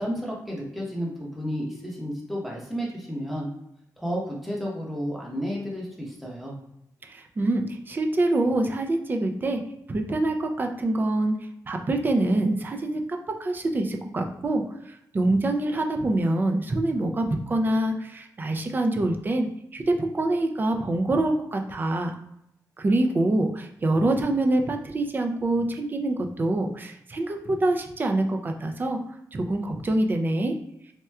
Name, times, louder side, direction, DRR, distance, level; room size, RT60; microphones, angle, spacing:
voice 1, 0.0-3.5 4.0-6.6, equal, ahead, -3 dB, 0.8 m, -32 dB
voice 2, 7.0-9.6 9.9-11.4 11.7-19.5 19.7-22.2 22.8-29.0 29.3-30.6, right 2 dB, 30° right, 4 dB, 0.4 m, -25 dB
4.2 x 2.2 x 2.3 m, 0.81 s
wide cardioid pair, 140°, 7 cm